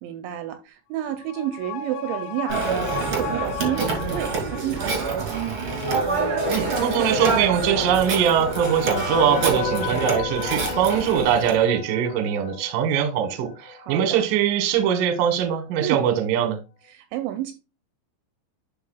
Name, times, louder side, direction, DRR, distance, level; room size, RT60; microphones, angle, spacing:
voice 1, 0.0-5.6 13.8-14.2 15.8-16.0 16.9-17.5, right 12 dB, 80° right, 2.8 m, -30 dB
sound 1, 1.0-13.9 14.2-14.3, left 8 dB, 85° left, 3.1 m, -34 dB
Telephone, 2.5-11.6, right 4 dB, 45° right, 1.9 m, -27 dB
voice 2, 6.5-16.6, right 9 dB, 65° right, 2.2 m, -22 dB
11.5 x 4.4 x 2.3 m
omnidirectional pair, 5.4 m